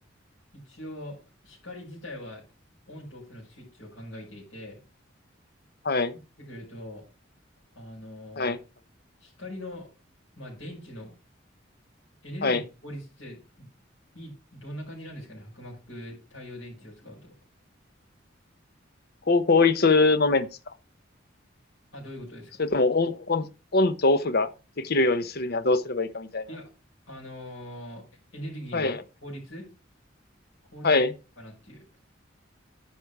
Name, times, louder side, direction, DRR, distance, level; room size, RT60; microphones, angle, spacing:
voice 1, 0.6-1.2 1.4-2.4 2.9-4.8 6.4-7.0 7.7-8.6 9.2-9.9 10.4-11.2 12.2-13.7 14.1-17.3 21.9-22.6 26.5-26.7 27.1-28.0 28.3-29.7 30.7-31.0 31.4-31.8, equal, 85° left, 5.7 m, -41 dB
voice 2, 19.3-20.5 22.6-23.5 23.7-24.5 24.8-26.4 28.7-29.0 30.8-31.1, left 3 dB, 55° left, 0.9 m, -22 dB
10.0 x 6.3 x 4.7 m
head